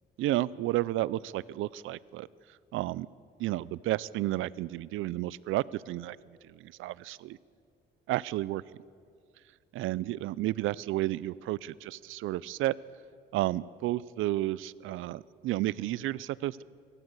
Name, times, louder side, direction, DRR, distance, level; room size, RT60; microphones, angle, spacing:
voice 1, 0.2-2.3 2.7-3.1 3.4-6.2 6.4-7.4 8.1-8.6 9.8-12.8 13.3-16.6, right 16 dB, 85° right, 21 dB, 0.5 m, -32 dB
23.0 x 14.5 x 8.1 m, 2.3 s
cardioid pair, 90°, 20 cm